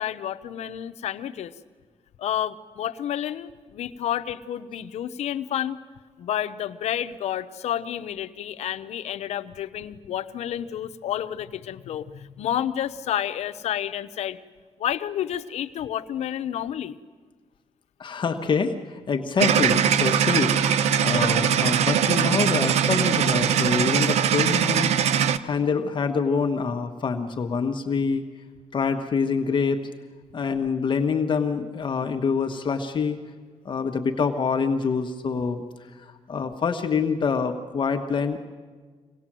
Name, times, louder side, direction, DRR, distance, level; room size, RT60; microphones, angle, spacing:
voice 1, 0.0-1.5 2.2-5.8 6.2-14.4 14.8-17.0, left 10 dB, 85° left, 12 dB, 0.8 m, -30 dB
voice 2, 18.0-25.0 25.4-28.2 28.7-29.8 30.3-33.2 33.6-35.6 36.0-38.4, left 5 dB, 45° left, 5 dB, 1.4 m, -26 dB
sound 1, 19.4-25.4, right 8 dB, 85° right, 0.8 m, -21 dB
25.5 x 18.5 x 7.5 m, 1.5 s
cardioid pair, 110°, 11 cm